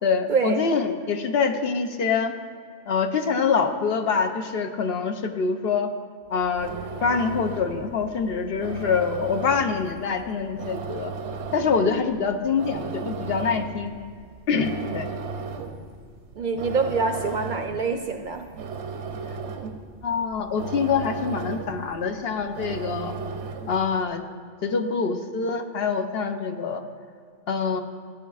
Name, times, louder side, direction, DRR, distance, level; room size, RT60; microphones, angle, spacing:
voice 1, 0.0-2.3 2.9-5.9 6.3-6.7 7.0-11.1 11.5-13.9 14.5-15.1 20.0-23.1 23.7-24.2 24.6-26.8 27.5-27.8, left 5 dB, 65° left, 6 dB, 0.8 m, -25 dB
sound 1, 6.3-23.9, right 5 dB, 85° right, 0.9 m, -36 dB
voice 2, 16.4-18.5, right 4 dB, 55° right, 6 dB, 0.6 m, -26 dB
14.5 x 9.1 x 2.4 m, 2.2 s
omnidirectional pair, 1.1 m